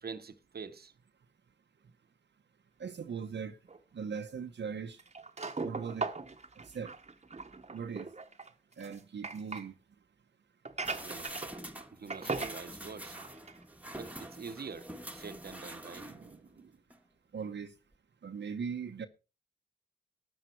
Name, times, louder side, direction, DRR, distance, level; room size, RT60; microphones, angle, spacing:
voice 1, 0.0-0.9 11.0-11.3 11.9-13.2 13.9-16.8, right 5 dB, 60° right, 1.0 m, -46 dB
voice 2, 2.8-3.6 3.9-5.0 5.6-6.1 6.6-6.9 7.7-8.1 8.8-9.7 10.9-11.0 17.3-17.7 18.2-19.1, right 6 dB, 75° right, 1.0 m, -39 dB
sound 1, 3.7-3.8 5.0-9.7 10.6-11.8 12.1-12.6 13.0-13.6 14.0-14.1 14.7-14.8, right 4 dB, 35° right, 1.2 m, -39 dB
sound 2, 10.8-16.5 16.9-17.0, right 1 dB, 10° right, 1.5 m, -46 dB
13.0 x 8.8 x 4.6 m
cardioid pair, 65°, 18 cm